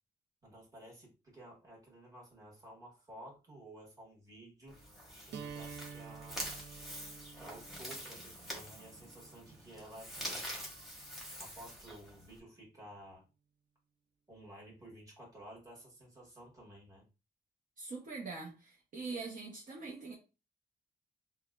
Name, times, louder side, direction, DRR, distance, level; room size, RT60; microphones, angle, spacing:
voice 1, 0.4-4.8 5.2-6.4 7.4-10.6 11.4-13.2 14.3-17.0, right 1 dB, 20° right, 1.5 m, -53 dB
sound 1, 4.7-12.4, equal, ahead, 1.2 m, -46 dB
sound 2, 5.3-11.3, right 6 dB, 85° right, 0.5 m, -51 dB
voice 2, 17.8-20.1, right 4 dB, 50° right, 0.8 m, -43 dB
5.7 x 2.2 x 2.4 m
wide cardioid pair, 170°, 18 cm